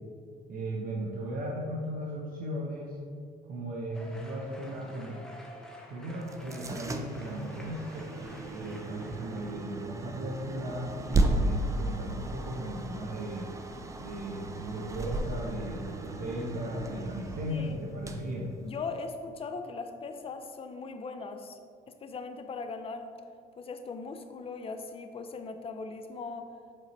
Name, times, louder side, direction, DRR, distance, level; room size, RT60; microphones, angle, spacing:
voice 1, 0.5-3.0 3.4-5.2 5.9-8.1 8.5-13.5 14.0-18.5, right 1 dB, 55° right, -3 dB, 0.8 m, -36 dB
sound 1, 3.9-9.5, equal, 5° left, 0.8 m, -49 dB
sound 2, 6.2-19.2, right 2 dB, 20° right, 0.4 m, -35 dB
voice 2, 17.5-17.8 18.6-21.6 21.9-23.1 23.6-26.5, left 4 dB, 35° left, 7 dB, 0.5 m, -39 dB
7.4 x 3.9 x 3.2 m, 2.3 s
cardioid pair, 110°, 17 cm